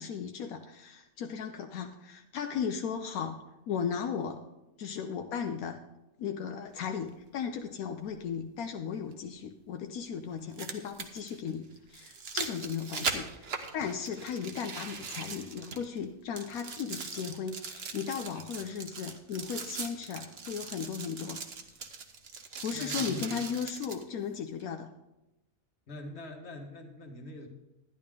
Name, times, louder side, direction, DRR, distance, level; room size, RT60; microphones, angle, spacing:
voice 1, 0.0-4.4 4.8-5.8 6.2-13.5 13.7-21.4 22.6-24.9, left 7 dB, 80° left, 5 dB, 1.1 m, -36 dB
sound 1, 7.1-7.2 9.1-9.2 10.3-16.1 16.4-24.0 24.6-24.7, right 5 dB, 50° right, 1.1 m, -40 dB
voice 2, 22.7-23.3 25.9-27.5, left 1 dB, 50° left, 3 dB, 1.7 m, -43 dB
11.5 x 10.5 x 3.6 m, 0.98 s
omnidirectional pair, 1.5 m